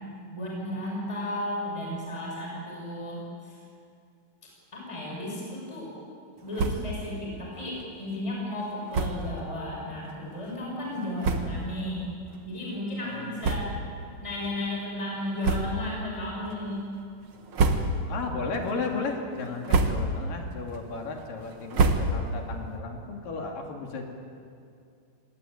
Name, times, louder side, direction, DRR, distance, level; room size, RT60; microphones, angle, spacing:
voice 1, 0.3-3.6 4.7-5.9 6.4-12.1 12.5-13.8 14.2-16.8, left 1 dB, 5° left, -3 dB, 6.0 m, -34 dB
sound 1, 6.5-7.0 7.3-7.4 7.7-7.9 8.9-9.3 10.1-10.2 10.8-10.9 11.2-11.7 12.3-12.4 13.4-14.0 14.4-14.5 15.4-16.0 16.4-16.9 17.3-18.2 18.6-19.0 19.4-20.3 20.7-22.5, right 3 dB, 60° right, 1.4 m, -28 dB
voice 2, 13.0-13.8 18.1-24.0, left 4 dB, 60° left, 2 dB, 4.1 m, -34 dB
26.5 x 20.0 x 9.2 m, 2.5 s
omnidirectional pair, 4.6 m